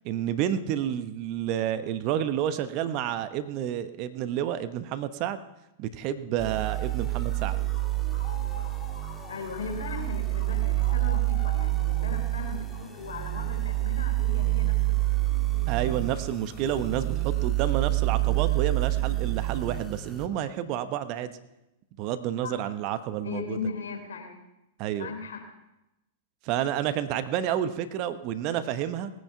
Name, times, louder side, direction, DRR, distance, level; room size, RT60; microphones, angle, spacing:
voice 1, 0.0-5.4 5.8-7.6 15.7-21.3 22.0-23.6 24.8-25.1 26.4-29.1, right 10 dB, 45° right, 11 dB, 1.0 m, -30 dB
sound 1, 6.4-20.3, right 18 dB, 5° left, 1.9 m, -28 dB
sound 2, 6.5-16.9, left 3 dB, 35° left, 5.5 m, -49 dB
voice 2, 9.3-15.3 22.4-22.7 23.2-24.3 25.0-25.4, left 4 dB, 70° left, 2 dB, 3.7 m, -38 dB
19.0 x 9.5 x 5.6 m, 0.93 s
figure-of-eight pair, 100°, 0 cm